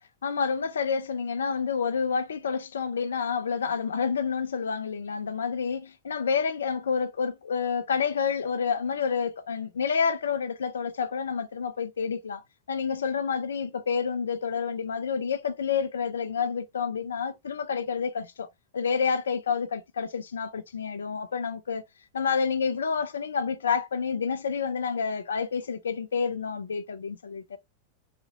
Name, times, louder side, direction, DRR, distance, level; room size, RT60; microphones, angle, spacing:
voice 1, 0.2-12.4 12.7-18.5 18.7-21.8 22.1-27.6, left 6 dB, 70° left, 0.6 m, -29 dB
4.1 x 2.8 x 2.9 m
figure-of-eight pair, 90°, 0 cm